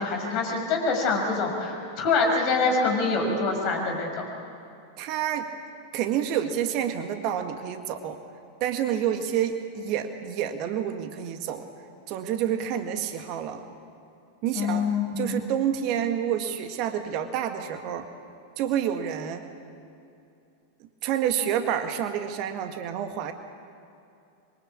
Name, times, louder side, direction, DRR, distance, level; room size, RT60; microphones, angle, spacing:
voice 1, 0.0-4.3 14.5-15.4, left 4 dB, 40° left, 2 dB, 6.4 m, -25 dB
voice 2, 5.0-5.5 5.9-8.2 8.6-11.7 12.1-13.6 14.4-18.1 18.6-19.4 21.0-23.3, right 9 dB, 40° right, 7 dB, 1.9 m, -28 dB
26.0 x 23.5 x 8.6 m, 2.6 s
figure-of-eight pair, 90°, 0 cm